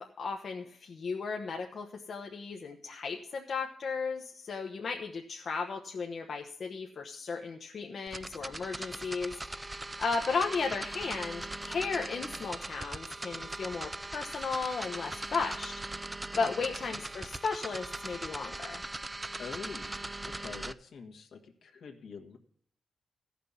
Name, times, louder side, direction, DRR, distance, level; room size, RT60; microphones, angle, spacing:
voice 1, 0.0-15.7 16.4-18.8, left 4 dB, 60° left, 2 dB, 0.9 m, -35 dB
sound 1, 8.1-20.7, right 2 dB, 15° right, 0.4 m, -40 dB
voice 2, 19.4-19.9 20.2-22.4, left 5 dB, 80° left, 2 dB, 1.6 m, -45 dB
14.0 x 5.9 x 7.0 m, 0.63 s
cardioid pair, 80°, 0 cm